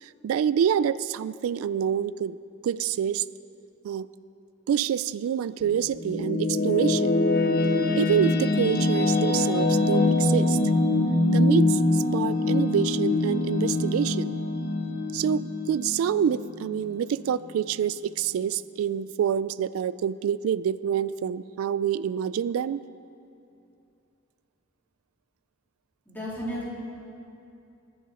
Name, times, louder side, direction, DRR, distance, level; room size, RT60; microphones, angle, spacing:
voice 1, 0.0-2.4 2.6-3.2 3.8-4.1 4.7-7.1 7.9-10.6 11.3-14.4 15.1-22.8, right 8 dB, 85° right, 16 dB, 0.3 m, -27 dB
sound 1, 5.6-16.9, left 2 dB, 50° left, 0.8 m, -24 dB
voice 2, 26.0-26.7, equal, 10° left, -8 dB, 3.0 m, -33 dB
20.0 x 7.1 x 4.9 m, 2.7 s
head